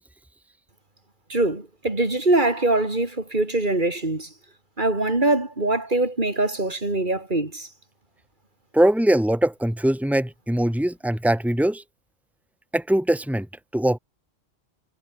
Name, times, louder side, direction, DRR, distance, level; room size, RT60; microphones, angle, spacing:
voice 1, 1.3-4.3 4.8-7.7, right 2 dB, 40° right, 4.1 m, -23 dB
voice 2, 8.7-11.8 12.7-13.5 13.7-14.0, right 1 dB, ahead, 2.9 m, -21 dB
omnidirectional pair, 1.2 m